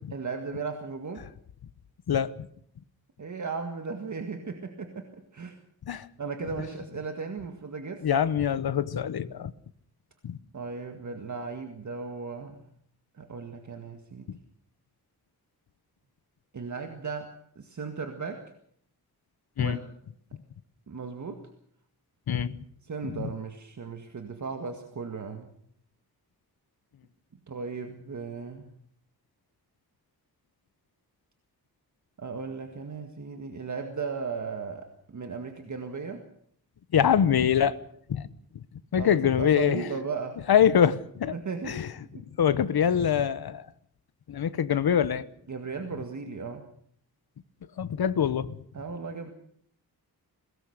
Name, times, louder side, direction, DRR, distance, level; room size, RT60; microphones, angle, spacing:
voice 1, 0.1-1.3 3.2-5.6 6.2-8.1 10.5-12.6 13.1-14.3 16.5-18.4 19.6-19.9 20.9-21.4 22.8-25.5 27.5-28.7 32.2-36.2 39.0-40.4 41.3-41.8 42.1-42.2 45.5-46.6 48.7-49.3, right 5 dB, 50° right, 5 dB, 1.9 m, -36 dB
voice 2, 8.0-9.5 10.2-10.4 14.3-14.4 19.6-19.8 22.3-22.6 23.0-23.1 36.9-37.8 38.1-38.3 38.9-39.8 40.5-41.3 41.7-41.9 42.4-43.6 44.3-45.2 47.8-48.5, left 8 dB, 75° left, 15 dB, 1.1 m, -24 dB
22.0 x 18.5 x 6.6 m, 0.66 s
wide cardioid pair, 140°, 38 cm